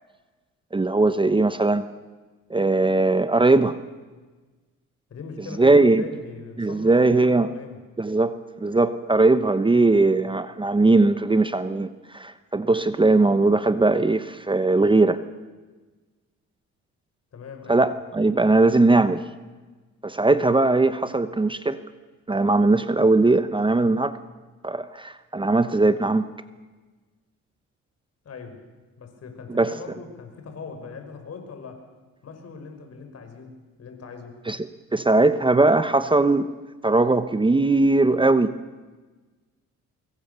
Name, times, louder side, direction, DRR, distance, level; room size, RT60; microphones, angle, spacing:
voice 1, 0.7-1.8 2.5-3.8 5.6-6.1 6.6-7.5 8.0-15.2 17.7-19.2 20.0-21.8 22.3-24.2 24.6-26.2 29.5-29.7 34.5-34.6 34.9-36.5 36.8-38.5, right 2 dB, 15° right, 12 dB, 1.0 m, -19 dB
voice 2, 5.1-7.8 17.3-17.9 28.2-28.6 29.0-31.8 32.2-34.4, left 5 dB, 55° left, 6 dB, 5.5 m, -40 dB
24.5 x 22.5 x 6.9 m, 1.3 s
cardioid pair, 90°, 30 cm